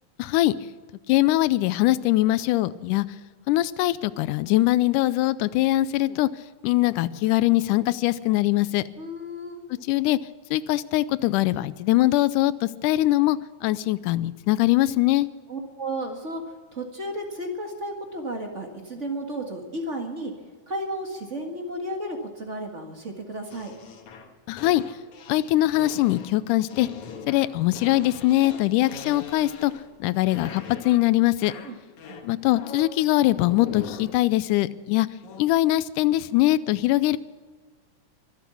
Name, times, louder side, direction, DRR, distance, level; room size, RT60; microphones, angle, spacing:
voice 1, 0.2-0.6 1.1-3.1 3.5-6.3 6.6-8.8 9.7-10.2 10.5-15.3 24.5-24.8 25.3-26.9 27.3-29.7 30.0-31.5 32.2-35.1 35.4-37.2, left 16 dB, 90° left, 17 dB, 2.1 m, -22 dB
voice 2, 9.0-9.6 15.5-20.3 20.7-23.7 31.6-31.8 32.1-32.3, right 1 dB, 30° right, 3 dB, 1.5 m, -33 dB
sound 1, 23.5-30.0 30.3-31.1 31.4-33.0 33.4-34.1 35.2-35.4, left 5 dB, 70° left, 2.9 m, -41 dB
24.0 x 8.3 x 7.1 m, 1.5 s
omnidirectional pair, 3.5 m